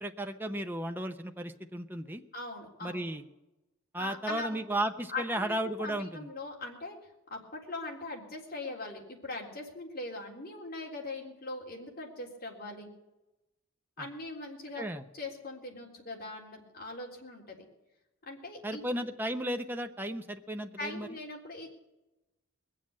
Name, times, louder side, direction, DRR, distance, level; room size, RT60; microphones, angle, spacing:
voice 1, 0.0-2.2 2.8-3.2 3.9-6.3 14.0-14.1 14.8-15.0 18.6-21.1, right 1 dB, 10° right, 6 dB, 0.6 m, -34 dB
voice 2, 2.3-3.0 4.0-4.6 5.1-7.0 7.3-12.9 14.0-14.8 15.1-17.7 18.2-18.8 20.8-21.7, left 2 dB, 45° left, -1 dB, 3.6 m, -41 dB
21.0 x 7.5 x 8.7 m, 0.98 s
head